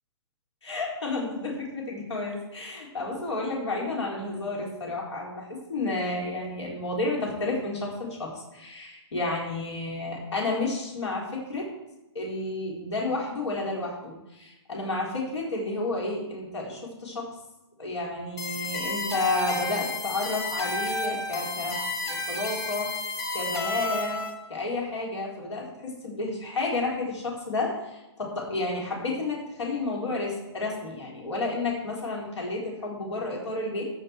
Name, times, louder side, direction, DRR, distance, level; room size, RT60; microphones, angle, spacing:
voice 1, 0.6-11.7 12.1-17.3 17.8-24.2 24.5-33.8, left 2 dB, 75° left, -2 dB, 4.1 m, -31 dB
sound 1, 18.4-24.3, left 2 dB, 20° left, 1.7 m, -31 dB
14.0 x 5.9 x 4.7 m, 0.96 s
hypercardioid pair, 130°, 15 cm